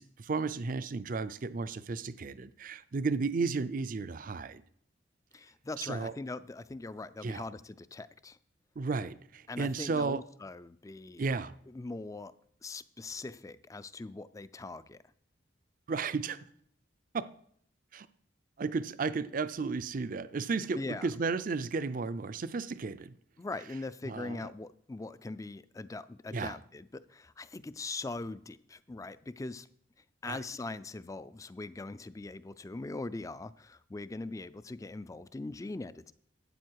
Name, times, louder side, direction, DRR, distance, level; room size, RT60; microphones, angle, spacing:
voice 1, 0.0-4.6 5.8-6.1 7.2-7.4 8.8-10.2 11.2-11.5 15.9-16.4 17.1-17.2 17.9-18.1 18.6-23.1 24.1-24.4 26.3-26.6 30.3-30.4, right 4 dB, 45° right, 0.5 m, -33 dB
voice 2, 5.3-8.4 9.5-11.2 11.7-12.3 12.6-15.0 20.7-21.1 23.4-29.7 30.2-36.1, left 3 dB, 15° left, 0.3 m, -41 dB
12.5 x 8.7 x 4.6 m
head